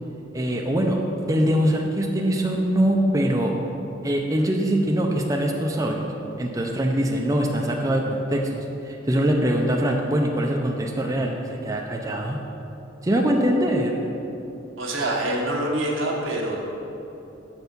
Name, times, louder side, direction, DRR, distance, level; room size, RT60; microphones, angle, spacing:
voice 1, 0.3-3.5 4.0-6.1 6.4-12.4 13.0-13.9, equal, 15° right, 0 dB, 0.5 m, -23 dB
voice 2, 14.8-16.6, right 1 dB, 85° right, -1 dB, 1.2 m, -25 dB
6.9 x 4.4 x 6.7 m, 3.0 s
head